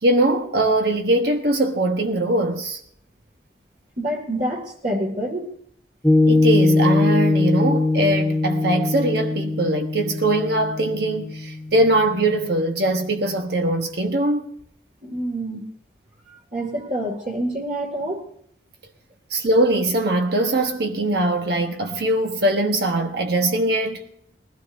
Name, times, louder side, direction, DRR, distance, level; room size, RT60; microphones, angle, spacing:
voice 1, 0.0-2.8 6.3-14.4 19.3-24.0, right 1 dB, 60° right, 1.2 m, -21 dB
voice 2, 4.0-5.5 15.0-15.7 16.5-18.2, right 1 dB, 45° right, 2.2 m, -27 dB
Piano, 6.0-12.7, left 2 dB, 5° left, 1.0 m, -21 dB
20.5 x 16.0 x 2.7 m
head